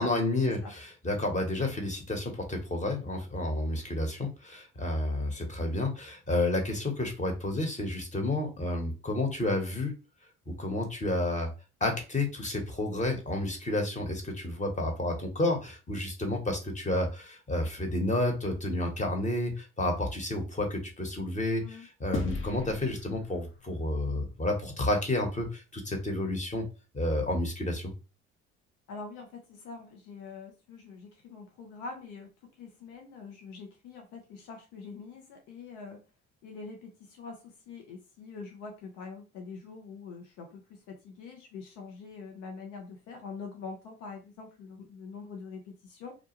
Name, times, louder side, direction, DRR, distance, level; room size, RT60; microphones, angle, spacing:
voice 1, 0.0-9.9 10.5-11.5 11.8-26.7 26.9-27.9, left 1 dB, 25° left, 3 dB, 1.2 m, -30 dB
sound 1, 22.1-24.7, left 4 dB, 40° left, 0.8 m, -38 dB
voice 2, 28.9-36.0 36.4-46.2, left 4 dB, 70° left, 2 dB, 0.8 m, -44 dB
2.5 x 2.2 x 3.0 m, 0.31 s
hypercardioid pair, 60°, 31 cm